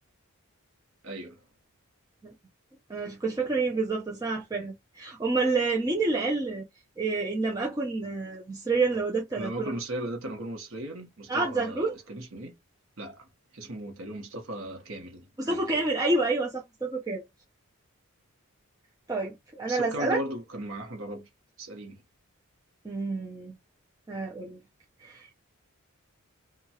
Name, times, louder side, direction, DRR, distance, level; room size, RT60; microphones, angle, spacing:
voice 1, 1.0-1.4 9.4-12.5 13.0-15.8 19.7-21.3 21.6-22.0, right 1 dB, 60° right, 1.0 m, -37 dB
voice 2, 2.9-6.6 7.0-9.7 11.3-11.9 15.4-17.2 19.1-20.2 22.8-23.5 24.1-24.6 25.0-25.4, right 3 dB, 15° right, 0.5 m, -28 dB
2.9 x 2.3 x 2.8 m
head